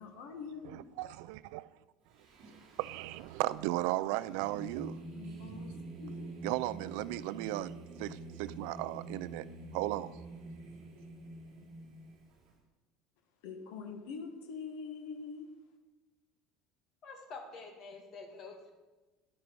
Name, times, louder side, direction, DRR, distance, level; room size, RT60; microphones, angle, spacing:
voice 1, 0.0-0.8 5.1-5.7 6.0-6.2 13.4-15.5, left 5 dB, 90° left, 3 dB, 1.7 m, -44 dB
voice 2, 0.6-1.7 2.8-5.0 6.4-7.7 8.0-9.5 9.7-10.1, right 17 dB, 70° right, 17 dB, 0.4 m, -35 dB
Singing, 2.1-12.5, right 2 dB, 40° right, 3.6 m, -47 dB
voice 3, 17.0-18.7, left 4 dB, 35° left, 2 dB, 2.3 m, -47 dB
13.5 x 10.5 x 4.7 m, 1.2 s
cardioid pair, 175°, 0 cm